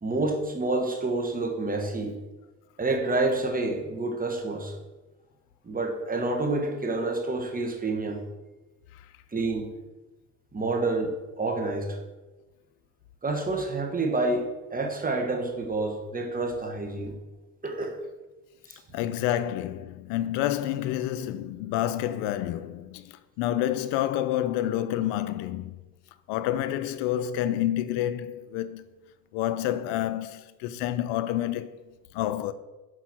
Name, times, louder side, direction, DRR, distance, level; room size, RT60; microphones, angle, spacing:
voice 1, 0.0-2.1 2.8-4.8 5.6-8.2 9.3-9.7 10.5-12.0 13.2-17.1 17.6-18.0 18.7-18.8, right 2 dB, 20° right, 1.5 m, -28 dB
voice 2, 18.9-25.8 26.3-28.8 29.3-31.8 32.1-32.5, left 12 dB, 75° left, 0.5 m, -29 dB
6.0 x 4.5 x 6.0 m
supercardioid pair, 80°, 42 cm